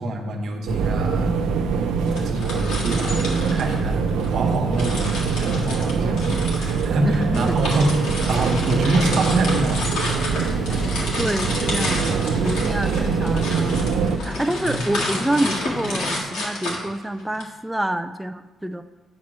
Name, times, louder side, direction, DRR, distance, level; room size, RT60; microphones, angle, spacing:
voice 1, 0.0-1.3 2.2-4.0 4.3-5.0 5.3-8.0 8.3-9.9 14.6-14.8, right 2 dB, 65° right, 2 dB, 1.1 m, -25 dB
sound 1, 0.7-14.2, right 5 dB, 85° right, 0.5 m, -23 dB
sound 2, 2.1-4.3 4.7-17.4, left 2 dB, 85° left, 1.8 m, -31 dB
sound 3, 5.2-16.2, left 1 dB, 30° left, 0.9 m, -36 dB
voice 2, 7.0-7.6 11.2-18.8, right 1 dB, 10° right, 9 dB, 0.3 m, -27 dB
8.5 x 3.0 x 6.1 m, 1.1 s
cardioid pair, 90°, 0 cm